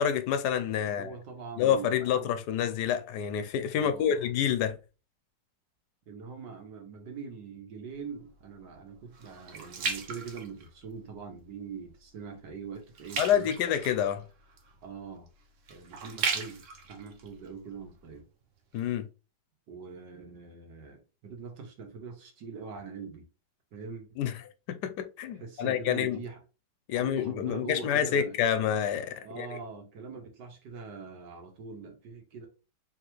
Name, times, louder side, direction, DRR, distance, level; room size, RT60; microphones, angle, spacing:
voice 1, 0.0-1.1 1.6-4.8 13.2-14.3 18.7-19.1 24.2-24.3 24.7-26.2 26.9-29.5, left 9 dB, 75° left, 1.1 m, -28 dB
voice 2, 0.9-2.3 3.7-4.3 6.1-13.5 14.8-15.3 15.7-18.2 19.7-23.3 23.7-24.1 25.4-26.4 26.9-28.4 29.2-32.5, right 5 dB, 70° right, 1.8 m, -43 dB
sound 1, 7.9-11.2 11.6-12.0 12.3-18.2 18.7-18.8, right 5 dB, 55° right, 0.9 m, -37 dB
4.8 x 3.4 x 3.0 m
omnidirectional pair, 2.0 m